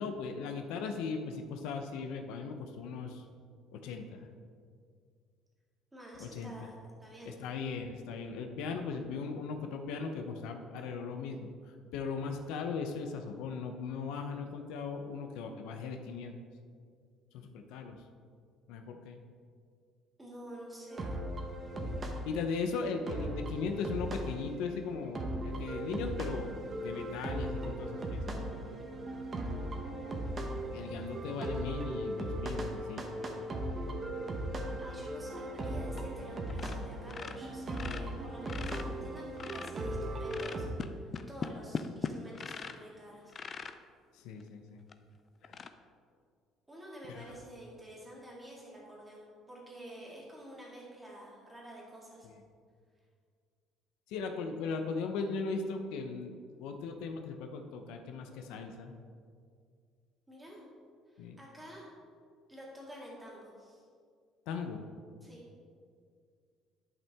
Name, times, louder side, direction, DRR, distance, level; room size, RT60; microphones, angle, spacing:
voice 1, 0.0-3.2 3.7-4.3 6.2-6.7 7.3-16.3 17.3-18.0 18.7-19.2 21.8-21.9 22.2-26.5 26.8-28.4 30.7-33.1 44.1-44.8 45.4-45.6 47.1-47.3 52.2-52.3 54.1-58.9 61.2-61.4 64.5-64.8, left 4 dB, 85° left, 5 dB, 0.7 m, -38 dB
voice 2, 5.9-7.4 20.2-21.0 34.8-43.3 46.7-52.3 60.3-60.6 61.1-61.9 62.5-63.8 65.2-65.4, right 1 dB, 10° right, -4 dB, 2.0 m, -49 dB
sound 1, 20.9-40.7, right 1 dB, 25° right, 0.9 m, -38 dB
sound 2, 35.9-36.2 36.5-36.8 37.1-39.9 40.3-42.9 43.3-43.8 44.4-44.5 44.9-45.0 45.4-45.7, left 5 dB, 30° left, 0.4 m, -40 dB
11.0 x 5.8 x 3.5 m, 2.1 s
cardioid pair, 150°, 0 cm